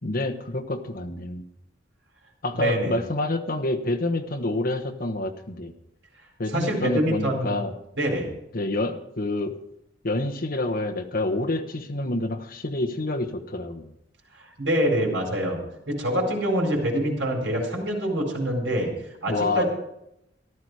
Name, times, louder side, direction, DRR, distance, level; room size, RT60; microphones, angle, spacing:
voice 1, 0.0-1.4 2.4-5.7 6.4-7.7 8.5-9.5 10.0-13.9 19.3-19.6, left 2 dB, 50° left, 4 dB, 1.2 m, -27 dB
voice 2, 2.5-2.9 6.5-7.6 8.0-8.3 14.3-15.6 15.9-18.9 19.2-19.7, equal, 75° right, 0 dB, 4.5 m, -25 dB
14.5 x 12.5 x 4.8 m, 0.84 s
head